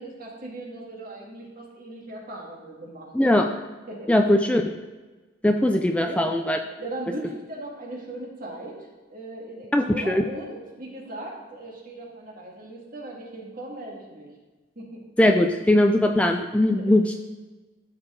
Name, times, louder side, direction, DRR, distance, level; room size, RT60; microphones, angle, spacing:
voice 1, 0.0-3.5 3.9-4.2 5.7-6.5 6.8-14.3 14.8-15.0 16.7-16.9, right 1 dB, 50° right, -2 dB, 2.1 m, -38 dB
voice 2, 3.1-3.5 4.1-4.6 5.4-6.6 9.7-10.2 15.2-17.2, left 1 dB, 5° left, 4 dB, 0.4 m, -20 dB
13.0 x 4.9 x 3.7 m, 1.2 s
head